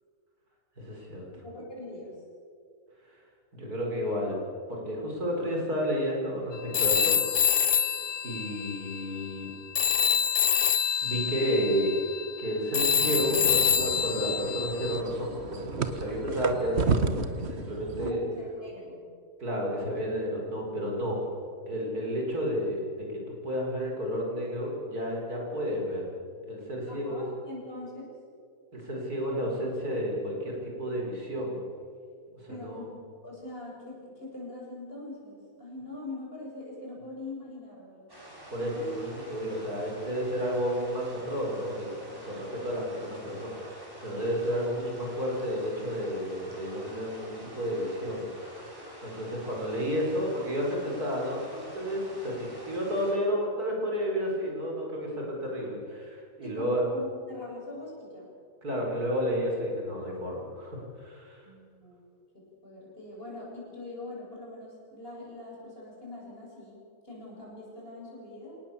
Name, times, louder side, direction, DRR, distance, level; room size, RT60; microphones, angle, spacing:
voice 1, 0.8-1.3 3.5-4.4 4.7-7.2 7.7-7.9 8.2-9.5 11.0-11.9 12.4-18.2 19.4-21.2 21.7-26.1 26.5-27.2 28.7-31.6 32.4-32.8 38.5-48.7 49.0-56.8 58.6-61.4, equal, 70° right, -1 dB, 5.4 m, -31 dB
voice 2, 1.4-2.2 18.0-19.1 19.7-19.9 26.9-28.2 32.5-33.0 33.2-38.1 38.7-39.0 56.4-58.3 61.4-62.0 62.3-68.6, left 2 dB, 35° left, -4 dB, 8.2 m, -43 dB
Telephone, 6.7-9.5 9.8-15.0, left 8 dB, 55° left, 0.7 m, -26 dB
sound 1, 13.0-18.1, right 4 dB, 45° right, 1.4 m, -32 dB
sound 2, 38.1-53.1, right 1 dB, 15° right, 6.2 m, -48 dB
28.0 x 18.5 x 7.3 m, 2.3 s
omnidirectional pair, 1.7 m